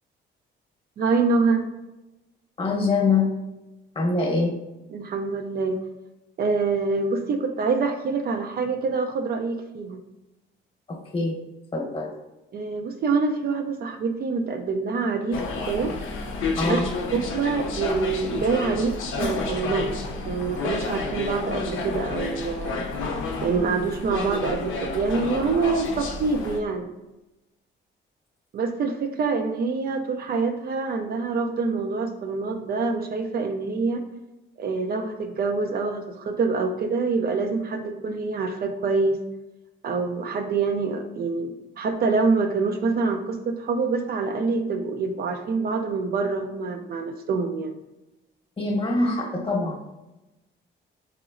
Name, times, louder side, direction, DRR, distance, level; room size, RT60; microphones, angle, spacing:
voice 1, 1.0-1.7 4.9-5.8 6.4-10.0 12.5-15.9 16.7-16.8 17.1-19.9 20.3-22.8 23.4-26.9 28.5-34.0 34.6-39.2 39.8-47.7, right 4 dB, 50° right, 5 dB, 0.4 m, -26 dB
voice 2, 2.6-3.3 3.9-4.5 10.9-11.3 11.7-12.1 16.6-16.9 48.6-49.9, left 3 dB, 30° left, 1 dB, 0.9 m, -24 dB
sound 1, 15.3-26.6, left 3 dB, 80° left, 0.5 m, -30 dB
3.8 x 3.0 x 2.5 m, 0.99 s
cardioid pair, 90°, 20 cm